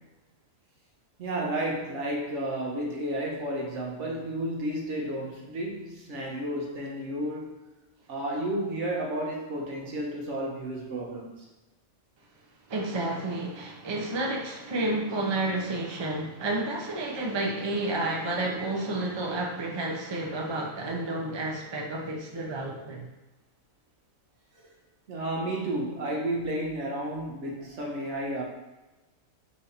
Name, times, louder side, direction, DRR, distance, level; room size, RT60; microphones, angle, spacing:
voice 1, 1.2-7.6 8.1-11.3 25.1-28.4, right 1 dB, 60° right, -1 dB, 1.1 m, -32 dB
voice 2, 12.7-23.0, right 2 dB, 45° right, -1 dB, 0.3 m, -30 dB
4.4 x 2.5 x 4.2 m, 1.1 s
omnidirectional pair, 1.4 m